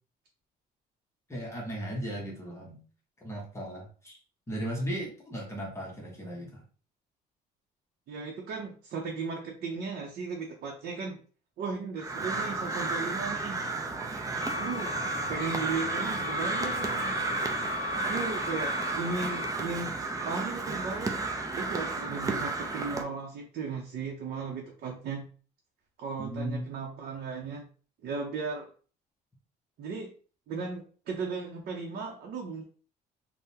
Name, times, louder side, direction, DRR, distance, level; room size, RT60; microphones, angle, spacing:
voice 1, 1.3-2.8 3.2-4.2 4.5-6.6 26.2-26.7, right 1 dB, 15° left, -2 dB, 0.9 m, -36 dB
voice 2, 8.1-11.2 11.6-13.6 14.6-15.0 15.3-17.1 18.0-19.9 20.2-21.2 21.5-25.3 26.0-27.7 28.0-28.7 29.8-30.1 30.5-32.6, right 4 dB, 60° right, 0 dB, 0.6 m, -36 dB
Crow, 12.0-23.0, right 3 dB, 20° right, 0.5 m, -32 dB
sound 1, 14.4-19.5, left 4 dB, 70° left, 0.7 m, -38 dB
3.5 x 2.1 x 2.7 m, 0.39 s
cardioid pair, 110°, 17 cm